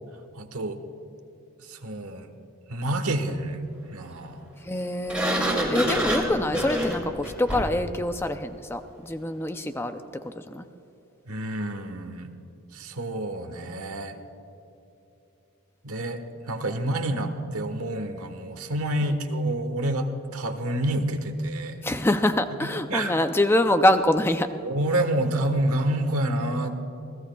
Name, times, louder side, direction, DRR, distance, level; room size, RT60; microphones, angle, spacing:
voice 1, 0.3-0.8 1.6-2.3 2.7-3.6 3.9-4.4 11.3-12.3 12.7-14.2 15.8-21.8 22.6-23.1 24.6-26.8, right 1 dB, 80° right, 6 dB, 1.3 m, -28 dB
voice 2, 4.6-10.7 21.8-24.5, left 1 dB, 10° left, 8 dB, 0.4 m, -25 dB
Sliding door, 5.1-7.9, equal, 5° right, 2.6 m, -27 dB
27.5 x 17.0 x 2.3 m, 2.9 s
head